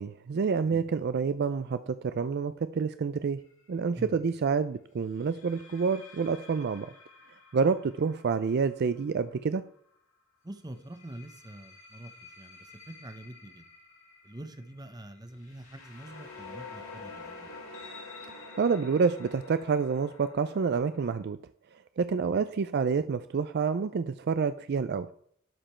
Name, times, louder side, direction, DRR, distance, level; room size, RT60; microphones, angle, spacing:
voice 1, 0.0-3.4 3.7-6.9 7.5-9.6 18.6-21.4 22.0-25.1, right 5 dB, 50° right, 12 dB, 0.4 m, -28 dB
sound 1, 3.4-3.7 5.2-9.9 10.7-21.2, left 3 dB, 70° left, 2.9 m, -49 dB
voice 2, 10.4-13.6 14.2-17.5 22.2-22.4, right 1 dB, 20° right, 9 dB, 0.8 m, -45 dB
12.0 x 5.1 x 4.4 m, 0.64 s
head